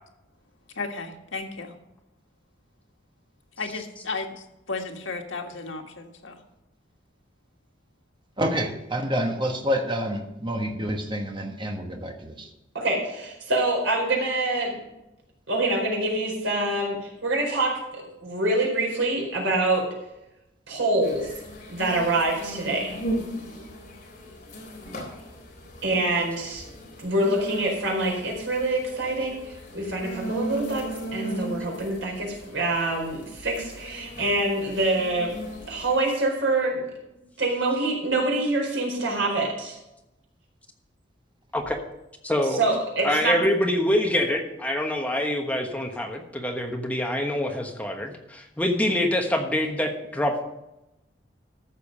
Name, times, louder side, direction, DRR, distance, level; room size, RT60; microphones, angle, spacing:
voice 1, 0.7-1.8 3.6-6.4, left 3 dB, 85° left, 3 dB, 1.7 m, -34 dB
voice 2, 8.4-12.5, equal, 25° right, 3 dB, 1.2 m, -28 dB
voice 3, 12.7-14.8 15.5-19.9 20.7-21.3 21.7-23.0 25.8-26.6 27.0-35.4 35.7-36.9 37.4-39.8 42.5-43.4, right 2 dB, 80° right, 0 dB, 4.5 m, -25 dB
sound 1, 21.0-36.0, right 1 dB, 45° left, 3.9 m, -37 dB
voice 4, 42.2-42.6 43.0-50.4, left 1 dB, 10° left, 2 dB, 1.2 m, -25 dB
14.0 x 6.8 x 5.5 m, 0.92 s
head